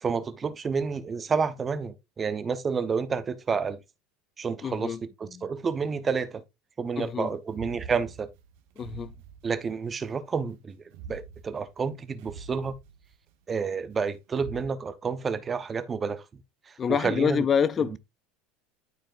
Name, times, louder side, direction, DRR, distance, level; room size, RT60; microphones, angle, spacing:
voice 1, 0.0-3.8 4.4-6.4 6.8-8.3 9.4-10.8 11.1-12.7 13.5-16.2 16.7-17.5 17.8-18.0, right 5 dB, 20° right, 0.8 m, -30 dB
voice 2, 4.6-5.0 7.0-7.3 8.8-9.1 16.8-18.0, left 7 dB, 25° left, 0.4 m, -26 dB
sound 1, 7.4-10.0 10.9-13.3 14.3-14.7, right 5 dB, 70° right, 1.1 m, -45 dB
12.5 x 4.7 x 2.5 m
supercardioid pair, 145°, 0 cm